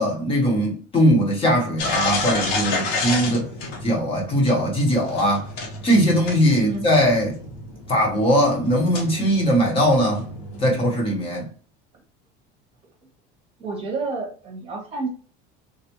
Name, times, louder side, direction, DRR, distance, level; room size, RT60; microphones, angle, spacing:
voice 1, 0.0-3.5 3.8-5.5 5.8-7.4 7.9-10.2 10.6-11.5, equal, 25° left, 0.9 m, -20 dB
sound 1, 1.8-11.0, left 3 dB, 80° left, 1.0 m, -31 dB
voice 2, 13.6-15.1, right 4 dB, 30° right, 0.9 m, -29 dB
3.4 x 2.3 x 2.9 m
cardioid pair, 160°, 21 cm